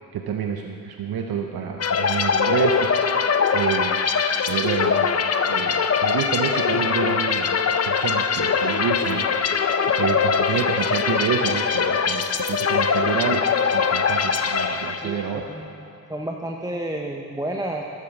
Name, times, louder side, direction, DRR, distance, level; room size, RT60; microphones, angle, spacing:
voice 1, 0.1-2.9 3.5-4.0 4.5-5.1 5.5-7.6 7.9-9.3 9.8-15.5, right 7 dB, 80° right, 3 dB, 0.7 m, -28 dB
sound 1, 1.8-15.4, left 6 dB, 45° left, 0.6 m, -22 dB
voice 2, 15.0-15.8 16.1-17.8, right 1 dB, 10° right, 0 dB, 0.8 m, -31 dB
13.0 x 8.5 x 4.9 m, 2.6 s
cardioid pair, 65°, 36 cm